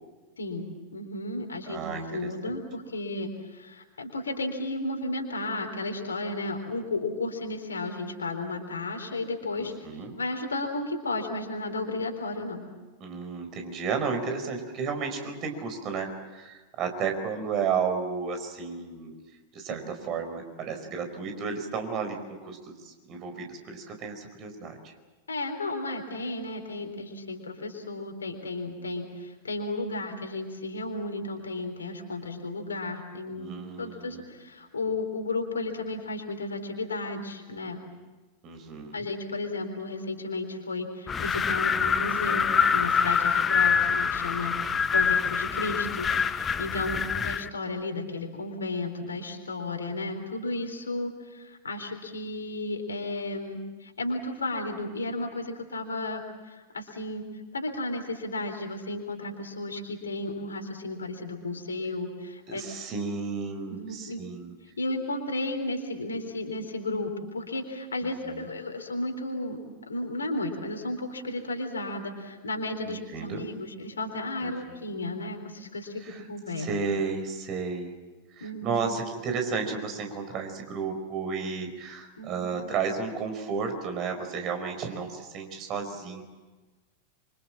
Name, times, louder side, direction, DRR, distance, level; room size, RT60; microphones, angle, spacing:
voice 1, 0.4-9.7 10.2-12.7 19.7-19.9 25.3-37.8 38.9-57.3 57.5-62.6 63.7-64.2 64.8-69.6 69.9-76.7 78.4-78.9 82.2-82.5, left 2 dB, 75° left, 4 dB, 3.9 m, -33 dB
voice 2, 1.7-2.6 9.6-10.2 13.0-19.1 19.5-24.9 33.3-34.3 38.4-39.1 43.6-43.8 46.9-47.3 62.5-64.6 68.0-68.5 72.9-73.5 74.4-74.8 76.0-76.2 76.6-78.0 78.4-86.2, right 5 dB, 35° right, 5 dB, 4.6 m, -33 dB
Wind, 41.1-47.5, left 6 dB, 20° left, 0.8 m, -25 dB
26.5 x 25.0 x 7.5 m, 1.2 s
figure-of-eight pair, 90°, 0 cm